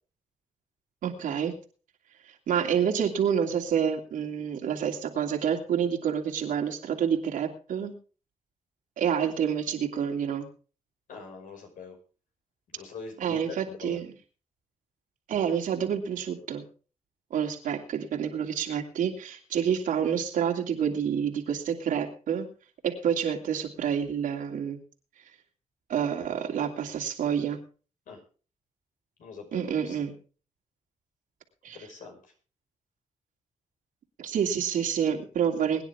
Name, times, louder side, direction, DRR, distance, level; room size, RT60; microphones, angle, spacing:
voice 1, 1.0-1.5 2.5-7.9 9.0-10.5 13.2-14.1 15.3-16.6 17.3-22.5 22.8-24.8 25.9-27.6 29.5-30.2 31.6-31.8 34.2-35.8, right 8 dB, 85° right, 3 dB, 2.8 m, -28 dB
voice 2, 11.1-12.0 12.7-14.0 28.1-28.2 29.2-30.0 31.7-32.3, left 5 dB, 85° left, 2 dB, 5.6 m, -44 dB
22.5 x 10.0 x 3.6 m, 0.38 s
cardioid pair, 90°, 13 cm